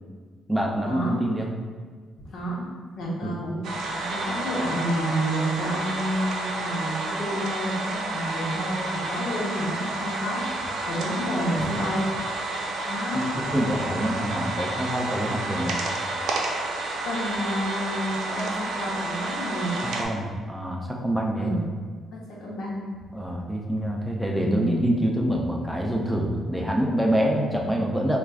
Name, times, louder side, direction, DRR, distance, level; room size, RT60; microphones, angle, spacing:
voice 1, 0.5-1.5 3.2-3.4 13.1-15.8 19.8-21.7 23.1-28.2, equal, ahead, -1 dB, 0.4 m, -26 dB
voice 2, 2.2-2.6 3.0-3.6 3.9-12.2 12.9-13.5 17.0-19.8 21.4-21.6 22.1-22.8 24.4-25.0, equal, 70° left, -3 dB, 0.9 m, -30 dB
sound 1, 3.6-20.0, right 2 dB, 75° right, 0.5 m, -30 dB
4.5 x 2.4 x 2.3 m, 1.5 s
cardioid pair, 90°, 0 cm